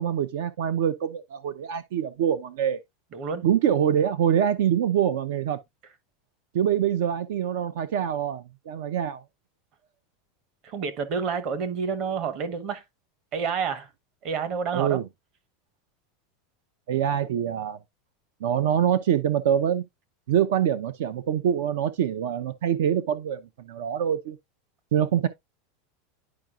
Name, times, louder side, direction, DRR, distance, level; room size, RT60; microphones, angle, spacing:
voice 1, 0.0-2.8 3.4-5.6 6.5-9.2 14.7-15.1 16.9-17.8 18.4-19.8 20.3-24.4 24.9-25.3, right 9 dB, 75° right, 0.6 m, -25 dB
voice 2, 3.1-3.4 10.6-12.8 13.3-13.9 14.2-15.0, right 6 dB, 35° right, 1.1 m, -29 dB
10.5 x 4.8 x 2.4 m
supercardioid pair, 165°, 0 cm